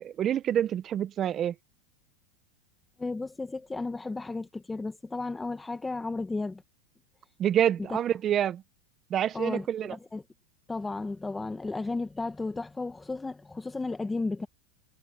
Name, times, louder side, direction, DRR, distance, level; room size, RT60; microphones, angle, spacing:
voice 1, 0.0-1.5 7.4-8.6 9.1-10.0, right 10 dB, 25° right, 0.4 m, -27 dB
voice 2, 3.0-6.6 7.9-8.0 9.3-10.2 10.7-14.5, left 3 dB, 10° left, 0.7 m, -34 dB
supercardioid pair, 155°, 0 cm